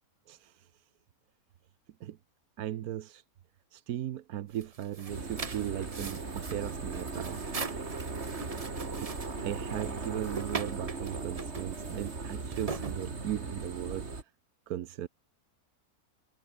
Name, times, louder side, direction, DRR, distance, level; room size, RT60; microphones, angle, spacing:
voice 1, 0.3-0.7 2.0-2.2 2.6-3.2 3.7-7.4 9.0-9.1 9.4-14.1 14.7-15.1, right 12 dB, 90° right, 1.3 m, -37 dB
sound 1, 4.5-13.6, right 4 dB, 25° right, 1.0 m, -41 dB
sound 2, 5.1-14.2, right 3 dB, 45° right, 2.8 m, -38 dB
omnidirectional pair, 1.5 m